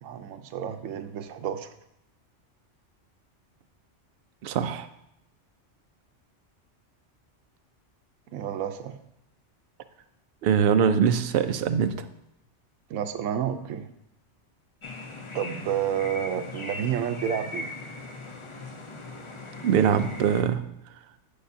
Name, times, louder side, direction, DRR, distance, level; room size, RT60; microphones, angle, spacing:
voice 1, 0.0-1.7 8.3-9.0 12.9-13.9 15.3-17.7, right 9 dB, 85° right, 9 dB, 1.0 m, -30 dB
voice 2, 4.4-4.9 10.4-12.0 19.6-20.6, right 7 dB, 65° right, 10 dB, 0.7 m, -22 dB
sound 1, 14.8-20.4, left 2 dB, 35° left, 0.5 m, -39 dB
7.9 x 6.7 x 2.7 m, 0.81 s
omnidirectional pair, 1.3 m